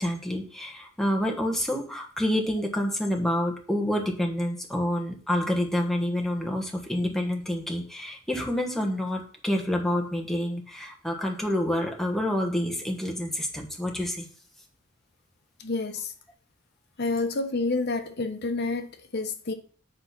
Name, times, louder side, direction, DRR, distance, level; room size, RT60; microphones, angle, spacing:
voice 1, 0.0-14.3, left 1 dB, ahead, 1.3 m, -28 dB
voice 2, 15.6-16.1 17.0-19.5, left 3 dB, 60° left, 1.0 m, -29 dB
8.1 x 3.9 x 5.9 m
head